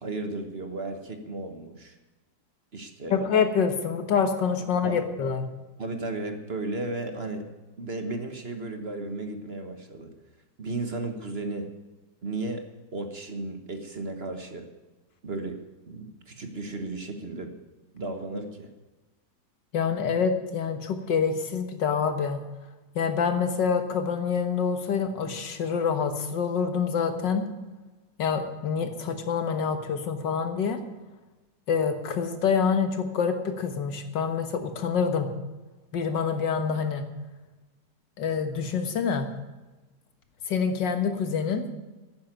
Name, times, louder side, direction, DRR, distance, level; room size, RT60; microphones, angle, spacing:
voice 1, 0.0-2.0 2.7-3.2 4.8-5.0 5.8-7.5 7.8-10.1 10.6-11.7 12.2-14.7 15.2-15.6 15.9-17.5 17.9-18.7, right 2 dB, 40° right, 6 dB, 1.4 m, -34 dB
voice 2, 3.1-5.5 19.7-22.4 23.0-27.4 28.2-30.8 31.7-35.3 35.9-37.0 38.2-39.3 40.5-41.7, left 6 dB, 90° left, 7 dB, 2.1 m, -26 dB
11.5 x 9.7 x 9.1 m, 1.2 s
omnidirectional pair, 1.9 m